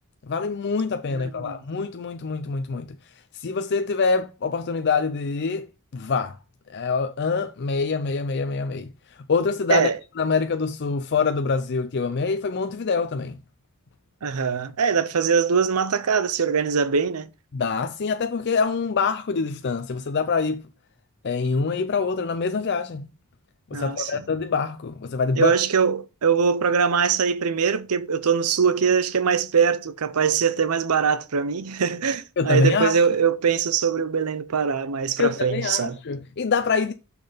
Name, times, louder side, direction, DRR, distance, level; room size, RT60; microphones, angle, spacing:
voice 1, 0.3-2.9 3.4-5.7 5.9-6.3 6.7-8.9 9.3-9.9 10.2-13.4 17.5-20.6 21.2-23.1 23.7-25.5 32.4-32.9 35.2-36.9, left 4 dB, 50° left, 0.5 m, -25 dB
voice 2, 1.1-1.6 9.7-10.0 14.2-17.3 23.7-24.2 25.4-36.0, right 6 dB, 85° right, 0.7 m, -22 dB
6.5 x 6.1 x 4.0 m
head